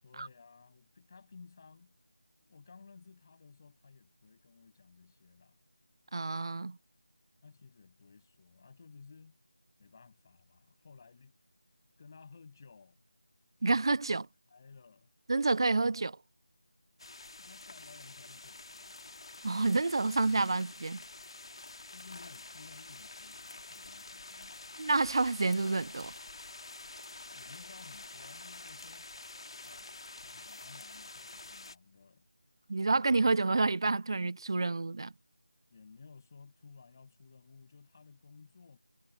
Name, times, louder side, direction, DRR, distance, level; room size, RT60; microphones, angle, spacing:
voice 1, 0.0-2.0 2.4-5.6 7.4-9.4 9.8-11.3 12.0-13.0 14.1-15.1 17.4-19.1 21.9-24.7 27.3-29.1 29.6-29.9 30.2-32.3 35.7-38.8, left 5 dB, 30° left, 7.5 m, -56 dB
voice 2, 6.1-6.8 13.6-14.2 15.3-16.2 19.4-21.0 24.8-26.1 32.7-35.1, right 3 dB, 45° right, 0.4 m, -29 dB
sound 1, 17.0-31.8, left 3 dB, 55° left, 2.4 m, -48 dB
figure-of-eight pair, 170°, 3 cm